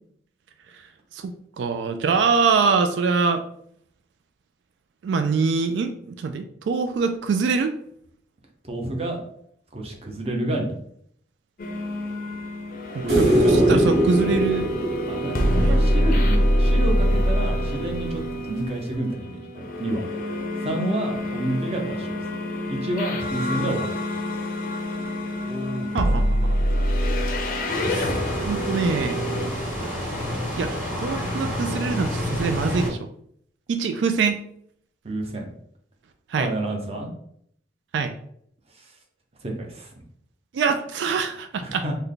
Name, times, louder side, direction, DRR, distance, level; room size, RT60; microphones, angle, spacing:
voice 1, 1.1-3.4 5.0-7.7 12.9-14.7 15.5-15.8 25.9-26.4 27.9-28.1 28.4-29.2 30.6-30.7 31.0-33.1 33.7-34.4 36.3-36.5 37.9-38.1 40.5-41.8, right 5 dB, 90° right, 8 dB, 0.3 m, -24 dB
voice 2, 8.6-9.2 9.7-10.7 13.0-14.0 15.1-18.2 18.5-20.0 20.6-22.1 22.7-24.0 25.4-26.2 35.0-35.5 36.4-37.1 38.8-38.9 39.4-39.9 41.6-41.9, right 1 dB, 35° right, 1 dB, 0.7 m, -29 dB
sound 1, 11.6-29.5, equal, 50° left, 0.5 m, -25 dB
sound 2, 13.1-16.4 18.9-19.0, right 1 dB, 65° right, 1.1 m, -21 dB
sound 3, 27.7-32.9, left 1 dB, 10° right, 1.5 m, -29 dB
3.3 x 2.1 x 3.8 m, 0.67 s
head